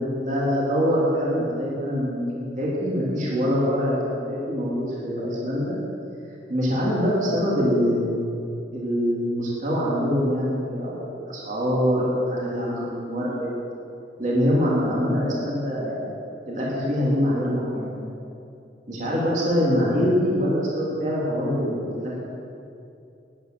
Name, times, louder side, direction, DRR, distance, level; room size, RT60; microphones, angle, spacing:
voice 1, 0.0-5.8 6.5-8.3 8.7-13.5 14.2-16.1 16.4-17.9 18.9-22.2, equal, 45° right, -6 dB, 3.2 m, -24 dB
13.5 x 10.5 x 6.3 m, 2.6 s
head